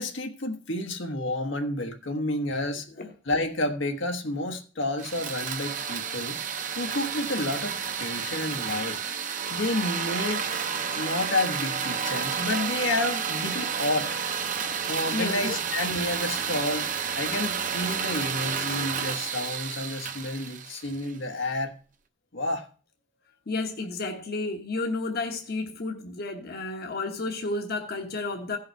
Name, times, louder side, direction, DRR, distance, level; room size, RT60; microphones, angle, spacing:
voice 1, 0.0-2.9 3.3-6.4 6.7-9.0 9.5-10.4 10.9-14.2 14.9-16.9 17.2-21.7 22.3-22.7, left 2 dB, 85° left, 1.3 m, -30 dB
sound 1, 5.0-21.2, right 7 dB, 45° right, 0.8 m, -31 dB
voice 2, 15.1-15.5 23.5-28.6, left 3 dB, 55° left, 1.0 m, -31 dB
16.0 x 5.5 x 4.5 m
head